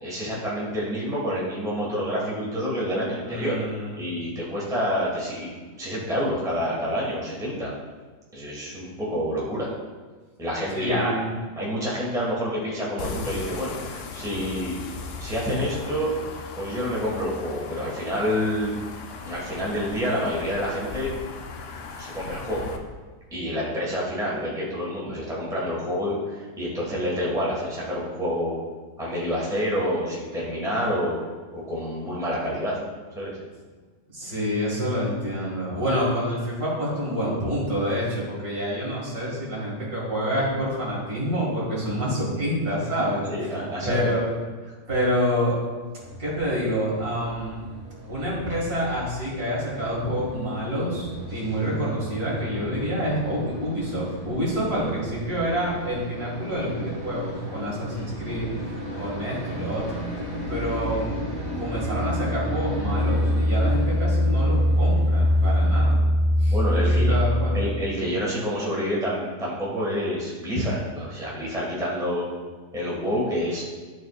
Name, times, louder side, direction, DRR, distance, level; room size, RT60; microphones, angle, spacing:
voice 1, 0.0-3.6 4.0-5.5 5.8-7.7 8.3-9.7 10.4-11.1 11.6-14.7 15.2-16.1 16.6-18.7 19.2-21.1 22.0-22.7 23.3-28.5 29.0-31.2 31.5-32.8 33.1-33.3 43.0-44.1 57.9-58.1 66.5-67.1 67.5-72.3 72.7-73.6, equal, ahead, -5 dB, 1.4 m, -28 dB
voice 2, 3.2-4.0 10.7-11.3 34.1-43.2 43.8-44.3 44.9-45.5 46.2-47.7 48.0-58.5 58.9-60.0 60.5-61.0 61.5-66.0 66.4-67.7, equal, 65° right, -5 dB, 2.7 m, -27 dB
sound 1, 13.0-22.8, left 4 dB, 70° left, 0.6 m, -37 dB
sound 2, 46.0-65.9, equal, 20° right, 2.2 m, -36 dB
sound 3, 60.4-67.9, equal, 45° right, 0.6 m, -23 dB
12.0 x 4.3 x 2.4 m, 1.4 s
omnidirectional pair, 1.7 m